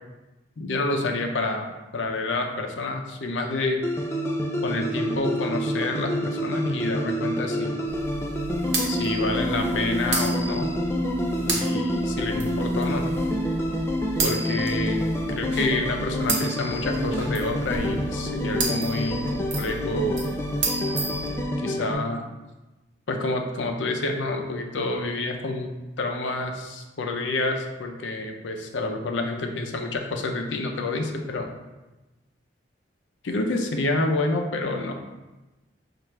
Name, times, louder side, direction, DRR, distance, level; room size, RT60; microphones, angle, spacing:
voice 1, 0.6-1.7 1.9-3.8 4.6-7.8 8.9-10.7 11.4-13.0 14.2-15.0 15.3-20.2 21.0-22.2 23.1-25.7 26.0-31.5 33.2-34.9, left 2 dB, 80° left, 3 dB, 0.6 m, -28 dB
sound 1, 3.8-21.9, equal, 15° left, 0.4 m, -27 dB
sound 2, 7.9-21.4, right 3 dB, 65° right, 0.8 m, -33 dB
5.6 x 2.5 x 3.2 m, 1.1 s
head